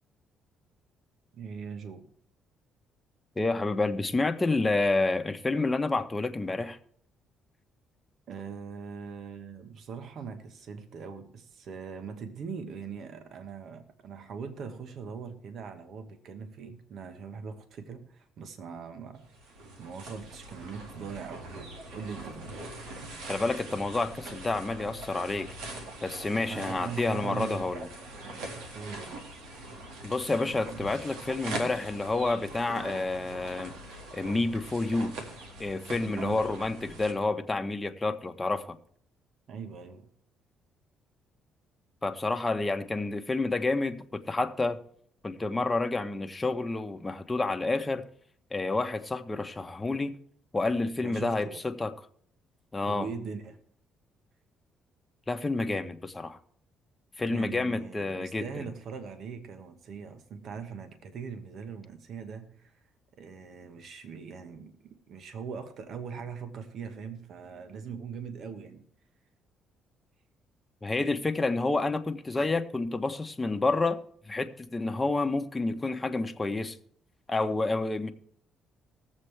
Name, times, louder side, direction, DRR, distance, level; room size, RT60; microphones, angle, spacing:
voice 1, 1.3-2.1 8.3-19.2 19.8-22.6 26.4-27.9 28.7-29.3 36.0-36.5 39.5-40.1 42.5-42.6 51.0-51.6 52.9-53.6 57.3-62.8 63.2-68.9 77.5-77.6, right 6 dB, 65° right, 1.2 m, -41 dB
voice 2, 3.4-6.8 23.3-25.5 26.0-27.9 30.0-33.7 34.1-35.1 35.6-38.8 42.0-44.8 45.2-48.0 48.5-50.1 50.5-51.9 52.7-53.1 55.3-56.4 57.2-58.4 70.8-74.0 74.3-76.8 77.3-78.1, left 3 dB, 20° left, 1.0 m, -29 dB
sound 1, 19.2-37.1, right 2 dB, 90° right, 1.9 m, -42 dB
19.5 x 7.4 x 3.3 m
cardioid pair, 85°, 0 cm